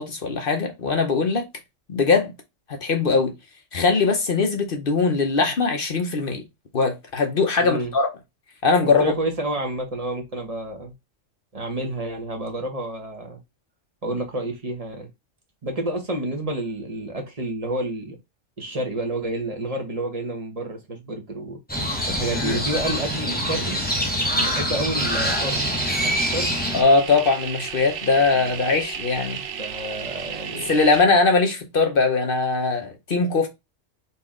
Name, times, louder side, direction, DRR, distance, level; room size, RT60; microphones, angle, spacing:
voice 1, 0.0-1.4 1.9-2.3 2.7-3.3 3.7-6.4 6.7-8.1 8.6-9.0 22.3-22.6 26.7-29.4 30.6-33.5, left 4 dB, 50° left, 1.0 m, -21 dB
voice 2, 7.6-7.9 8.8-10.9 11.5-13.4 14.0-15.1 15.6-18.2 18.6-21.6 22.1-23.8 24.4-25.7 26.0-26.5 28.4-28.8 29.5-30.7, right 1 dB, 30° right, 1.1 m, -29 dB
Crow, 21.7-26.8, equal, 10° left, 0.9 m, -25 dB
sound 1, 25.0-31.0, right 8 dB, 65° right, 0.8 m, -34 dB
4.2 x 3.0 x 3.7 m
omnidirectional pair, 1.3 m